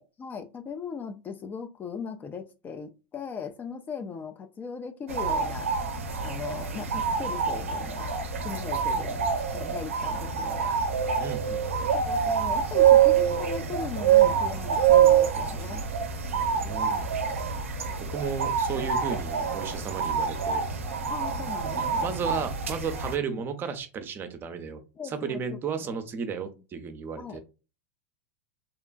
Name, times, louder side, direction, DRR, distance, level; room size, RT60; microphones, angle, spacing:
voice 1, 0.0-5.7 6.2-8.2 8.4-10.8 11.9-15.8 21.1-22.1 23.3-23.4 25.0-25.6 25.8-26.0 27.2-27.4, left 6 dB, 25° left, 0.3 m, -38 dB
sound 1, 5.1-23.2, right 8 dB, 85° right, 0.4 m, -25 dB
voice 2, 11.2-11.9 16.3-17.2 17.7-17.8 18.1-20.6 21.8-27.4, right 6 dB, 30° right, 0.5 m, -34 dB
2.8 x 2.2 x 2.5 m
hypercardioid pair, 95°, 7 cm